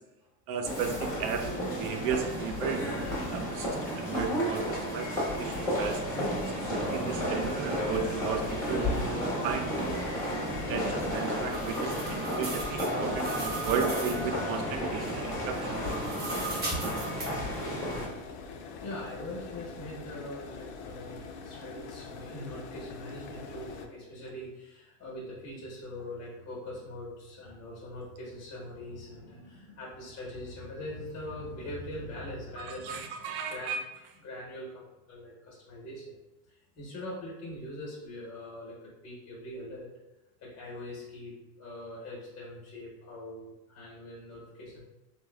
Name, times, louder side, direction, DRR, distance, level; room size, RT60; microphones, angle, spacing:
voice 1, 0.5-1.5 1.8-2.8 3.3-5.1 5.4-6.0 6.5-6.6 6.9-8.9 9.4-10.0 10.7-15.6 32.6-33.8, right 6 dB, 65° right, 5 dB, 0.6 m, -34 dB
sound 1, 0.6-18.1, equal, 5° left, 1.2 m, -32 dB
sound 2, 7.3-23.9, left 4 dB, 50° left, 0.5 m, -44 dB
sound 3, 10.9-14.3 15.6-17.3, right 3 dB, 20° right, 0.7 m, -38 dB
voice 2, 17.3-17.7 18.8-33.8 34.2-36.1 36.5-39.9 40.4-44.8, left 1 dB, 35° left, -4 dB, 1.2 m, -42 dB
3.4 x 2.2 x 2.3 m, 1.0 s
supercardioid pair, 120°, 46 cm